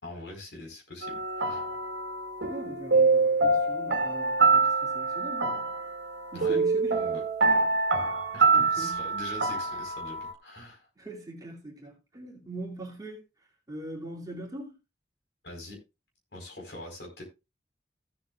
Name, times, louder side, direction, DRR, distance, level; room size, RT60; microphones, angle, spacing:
voice 1, 0.0-1.7 6.3-6.6 7.0-7.2 8.3-10.9 15.4-15.8 16.3-17.3, left 1 dB, 70° left, 4.5 m, -43 dB
sound 1, 1.0-10.3, right 3 dB, 80° right, 1.3 m, -25 dB
voice 2, 2.5-5.6 6.3-7.1 7.4-7.8 8.5-9.1 11.0-13.2 13.7-14.8, right 1 dB, 20° right, 2.6 m, -41 dB
15.5 x 7.8 x 2.4 m
head